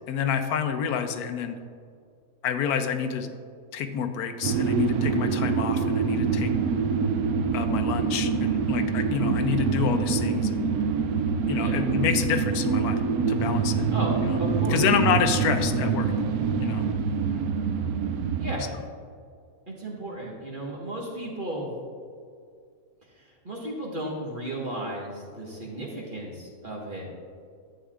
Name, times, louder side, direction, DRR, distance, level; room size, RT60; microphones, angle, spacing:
voice 1, 0.1-1.6 2.4-3.3 3.7-6.5 7.5-10.7 11.5-13.0 13.3-13.9 14.7-16.1 16.6-16.8, left 7 dB, 85° left, 8 dB, 1.1 m, -28 dB
sound 1, 4.4-18.5, right 5 dB, 80° right, 1.0 m, -25 dB
voice 2, 13.9-14.8 18.4-18.6 19.7-21.7 23.2-27.1, right 1 dB, 35° right, -4 dB, 1.6 m, -34 dB
11.5 x 7.9 x 2.4 m, 2.2 s
omnidirectional pair, 1.6 m